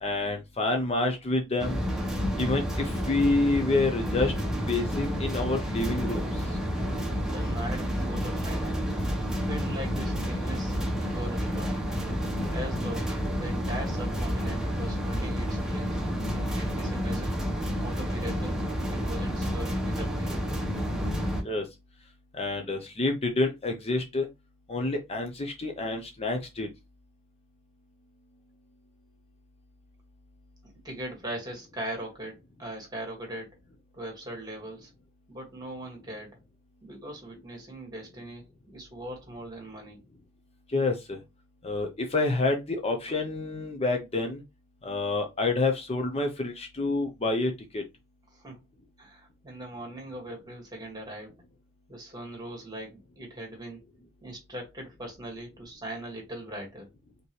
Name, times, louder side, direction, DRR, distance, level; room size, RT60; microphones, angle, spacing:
voice 1, 0.0-1.8 2.4-4.3 4.7-6.2 21.4-21.6 22.3-24.3 24.7-26.7 40.7-41.2 41.6-44.4 44.8-47.8, left 2 dB, 30° left, 0.7 m, -28 dB
sound 1, 1.6-21.4, equal, 5° right, 1.1 m, -30 dB
voice 2, 7.3-8.8 9.5-11.9 12.4-13.1 13.4-16.0 16.3-17.4 17.8-18.6 18.9-20.4 30.8-33.6 33.9-34.9 35.3-36.4 36.8-38.4 38.7-40.0 48.3-48.6 49.0-51.3 51.9-53.9 54.2-56.9, right 1 dB, 20° right, 1.9 m, -40 dB
5.3 x 3.0 x 3.2 m
head